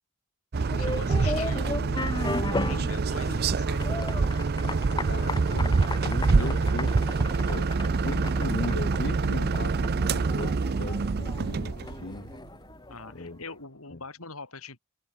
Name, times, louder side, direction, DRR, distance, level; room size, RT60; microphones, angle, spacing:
voice 1, 0.5-4.0 6.2-6.6 12.9-14.8, left 3 dB, 85° left, 5.3 m, -42 dB
sound 1, 0.5-12.5, right 4 dB, 50° right, 0.5 m, -26 dB
sound 2, 0.6-13.3, left 2 dB, 20° left, 1.1 m, -36 dB
voice 2, 5.1-7.7 8.0-12.3 13.1-13.4 13.9-14.0, left 2 dB, 50° left, 1.1 m, -38 dB
head